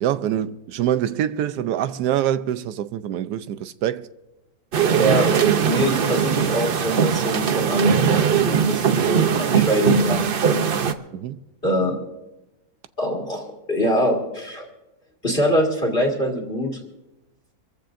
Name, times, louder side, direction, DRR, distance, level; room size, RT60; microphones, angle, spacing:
voice 1, 0.0-4.1 11.1-11.4, right 11 dB, 90° right, 1.2 m, -25 dB
sound 1, 4.7-10.9, right 7 dB, 55° right, 0.6 m, -20 dB
voice 2, 5.0-5.3 5.6-10.7 11.6-12.0 13.0-14.7 15.2-16.8, equal, 35° left, 2.1 m, -23 dB
25.5 x 14.5 x 2.6 m
omnidirectional pair, 1.7 m